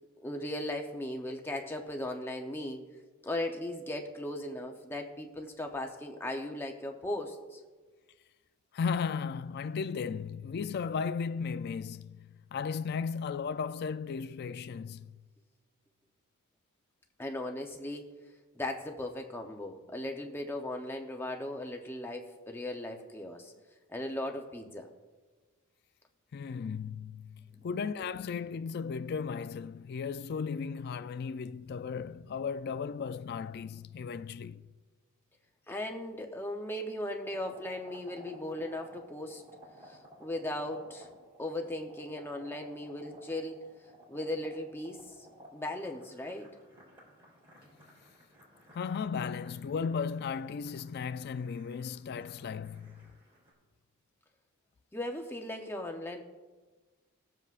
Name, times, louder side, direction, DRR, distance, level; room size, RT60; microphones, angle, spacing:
voice 1, 0.2-2.8 3.2-7.6 17.2-18.1 18.6-23.5 23.9-24.9 27.4-27.5 35.7-39.4 39.8-41.1 41.4-43.6 44.1-45.3 45.5-46.5 54.9-56.2, left 1 dB, 10° left, 0.7 m, -37 dB
voice 2, 8.7-15.2 26.3-34.7 48.7-53.0, left 6 dB, 45° left, 0.3 m, -35 dB
sound 1, 37.2-53.5, equal, 25° right, 3.7 m, -56 dB
19.5 x 7.5 x 2.5 m
head